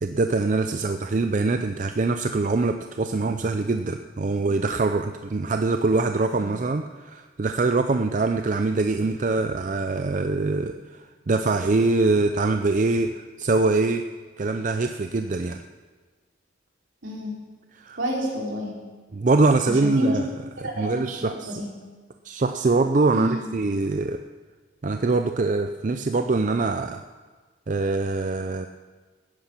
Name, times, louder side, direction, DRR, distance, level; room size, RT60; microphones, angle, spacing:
voice 1, 0.0-14.0 14.4-15.6 17.7-18.0 19.1-20.3 20.6-21.5 22.2-24.2 24.8-27.0 27.7-28.7, right 3 dB, 40° right, 7 dB, 0.4 m, -23 dB
voice 2, 17.0-17.3 18.0-18.8 19.6-20.1 20.6-21.7 23.1-23.5, equal, 70° right, -2 dB, 3.4 m, -29 dB
15.5 x 10.0 x 6.0 m, 1.4 s
head